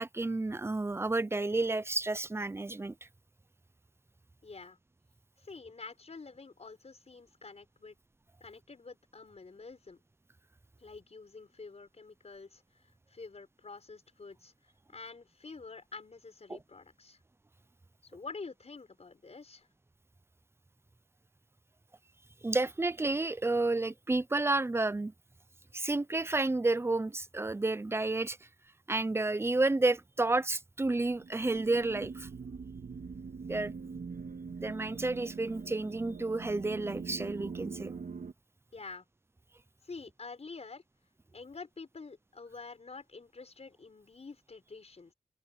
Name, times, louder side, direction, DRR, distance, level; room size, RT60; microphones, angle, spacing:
voice 1, 0.0-2.9 16.5-16.6 22.4-25.1 25.7-28.4 28.9-32.3 33.5-33.7 34.6-37.9, right 2 dB, 15° right, 0.6 m, -31 dB
voice 2, 4.4-4.8 5.4-8.0 8.4-10.0 10.8-17.2 18.0-19.7 38.7-39.1 39.8-40.8 41.3-45.1, left 4 dB, 45° left, 5.3 m, -48 dB
sound 1, 31.1-38.3, right 5 dB, 85° right, 2.6 m, -43 dB
wide cardioid pair, 130°, 15 cm